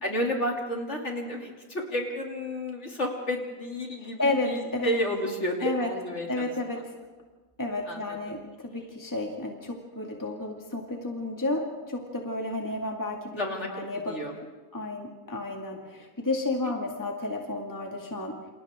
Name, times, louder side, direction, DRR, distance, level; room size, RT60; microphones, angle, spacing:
voice 1, 0.0-6.5 7.9-8.2 13.3-13.7 14.1-14.3, equal, 45° left, 0 dB, 3.2 m, -31 dB
voice 2, 4.0-4.9 5.6-5.9 6.3-7.0 7.6-13.4 13.7-14.3 14.7-18.4, left 2 dB, 10° left, 1 dB, 2.1 m, -32 dB
29.0 x 27.5 x 3.7 m, 1.3 s
omnidirectional pair, 1.7 m